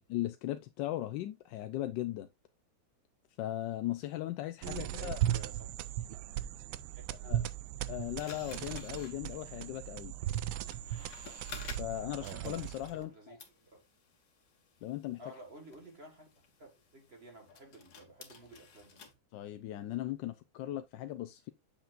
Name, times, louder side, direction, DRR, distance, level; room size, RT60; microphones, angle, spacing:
voice 1, 0.0-2.3 3.4-5.2 7.2-7.4 7.9-10.1 11.8-13.4 14.8-15.2 19.3-21.5, left 14 dB, 75° left, 1.2 m, -38 dB
sound 1, 4.6-13.0, right 12 dB, 85° right, 1.3 m, -37 dB
voice 2, 4.7-6.0 6.9-7.3 12.9-13.8 15.2-16.3 16.6-19.0, right 2 dB, 35° right, 1.8 m, -54 dB
sound 2, 8.2-13.1 13.4-19.1, left 5 dB, 55° left, 1.8 m, -53 dB
7.8 x 6.8 x 2.5 m
omnidirectional pair, 2.1 m